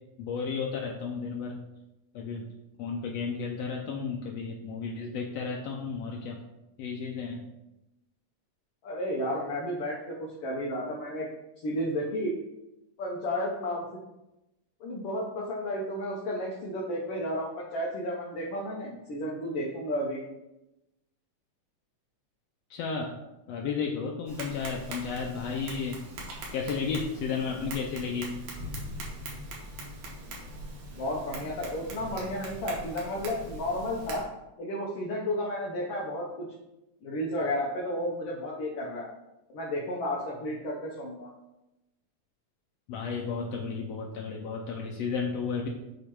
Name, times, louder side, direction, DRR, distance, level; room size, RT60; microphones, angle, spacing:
voice 1, 0.2-1.6 2.1-2.4 2.8-6.4 6.8-7.5 22.7-23.2 23.5-26.0 26.5-28.4 42.9-45.7, left 5 dB, 85° left, 0 dB, 1.4 m, -33 dB
voice 2, 8.8-10.1 10.4-11.3 11.6-12.3 13.0-14.0 14.8-20.2 31.0-34.2 34.6-36.5 37.0-39.1 39.5-41.3, left 1 dB, 65° left, -3 dB, 1.5 m, -32 dB
Tap, 24.3-34.2, right 1 dB, 75° right, 2.8 m, -41 dB
8.3 x 2.9 x 4.5 m, 0.93 s
omnidirectional pair, 3.7 m